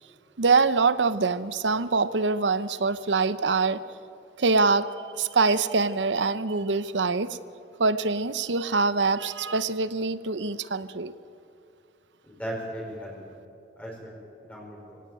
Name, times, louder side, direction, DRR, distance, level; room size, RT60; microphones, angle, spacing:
voice 1, 0.4-3.8 4.4-7.4 7.8-11.1, right 4 dB, 80° right, 14 dB, 0.8 m, -24 dB
voice 2, 12.2-13.3 13.8-14.1 14.4-15.0, equal, 10° left, -3 dB, 5.1 m, -37 dB
25.5 x 17.0 x 9.1 m, 2.6 s
head